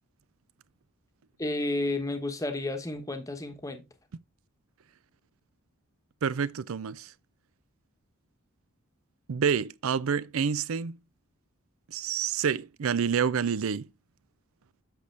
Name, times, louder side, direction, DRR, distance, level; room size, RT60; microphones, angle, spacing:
voice 1, 1.4-3.8, left 2 dB, 15° left, 1.1 m, -31 dB
voice 2, 6.2-7.1 9.3-11.0 11.9-13.9, right 7 dB, 70° right, 0.4 m, -28 dB
7.9 x 6.7 x 3.3 m
head